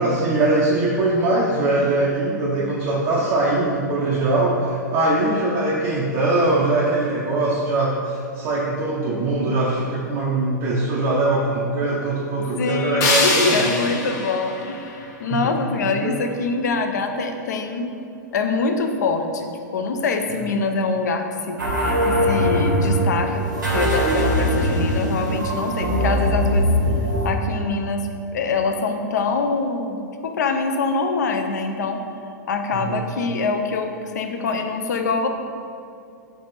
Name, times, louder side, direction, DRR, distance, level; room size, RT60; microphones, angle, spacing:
voice 1, 0.0-13.7 15.3-15.5 16.0-16.2 32.7-33.0, right 2 dB, 35° right, -5 dB, 0.5 m, -22 dB
voice 2, 12.6-17.9 18.3-21.6 22.0-23.4 23.7-26.7 27.2-28.1 28.3-32.0 32.5-35.3, left 4 dB, 65° left, 5 dB, 0.4 m, -24 dB
sound 1, 13.0-16.0, left 2 dB, 30° left, 0.8 m, -25 dB
sound 2, 21.6-27.3, equal, 90° right, 1.4 m, -21 dB
3.3 x 3.2 x 4.2 m, 2.4 s
figure-of-eight pair, 105°, 10 cm